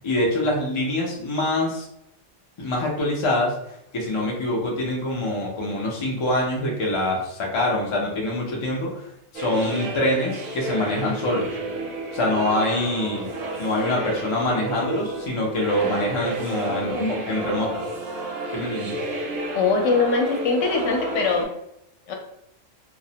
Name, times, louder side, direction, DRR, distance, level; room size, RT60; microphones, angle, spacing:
voice 1, 0.0-1.8 2.6-3.5 3.9-11.6 12.1-13.3 13.6-17.8 18.5-19.0, left 1 dB, 55° left, -2 dB, 0.3 m, -25 dB
sound 1, 9.3-21.4, right 2 dB, 65° right, 0.7 m, -31 dB
voice 2, 19.5-21.5 22.1-22.2, left 4 dB, 75° left, 2 dB, 0.9 m, -22 dB
2.3 x 2.0 x 2.7 m, 0.78 s
omnidirectional pair, 1.3 m